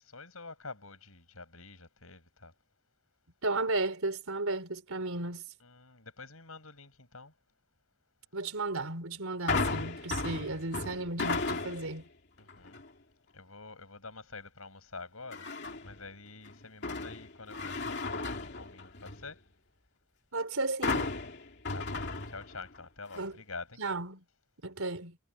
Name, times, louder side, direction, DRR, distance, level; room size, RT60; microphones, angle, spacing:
voice 1, 0.0-2.5 5.6-7.3 12.4-12.8 13.3-15.5 15.8-19.4 21.7-23.8, left 3 dB, 75° left, 7.2 m, -47 dB
voice 2, 3.4-5.5 8.3-12.1 20.3-21.1 23.1-23.4 23.8-24.2 24.6-25.2, right 2 dB, 75° right, 3.7 m, -34 dB
sound 1, 9.5-12.0 12.5-12.9 15.3-16.0 16.4-19.3 20.8-22.8 23.1-23.2, left 3 dB, 50° left, 2.7 m, -35 dB
head